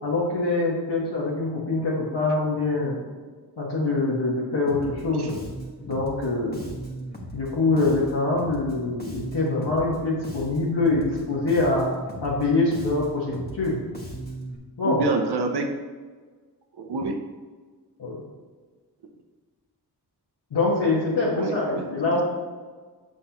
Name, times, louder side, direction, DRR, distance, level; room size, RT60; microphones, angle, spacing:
voice 1, 0.0-3.0 3.6-5.4 5.9-6.6 7.3-11.9 12.2-13.8 14.8-15.0 18.0-18.2 20.5-22.2, left 3 dB, 80° left, -7 dB, 1.5 m, -24 dB
Bass guitar, 4.7-14.6, right 1 dB, 25° left, 1.2 m, -38 dB
voice 2, 14.8-15.7 16.8-17.2 21.3-21.9 22.1-22.2, right 3 dB, 75° right, 4 dB, 0.7 m, -27 dB
8.1 x 5.6 x 2.9 m, 1.5 s
wide cardioid pair, 110°, 40 cm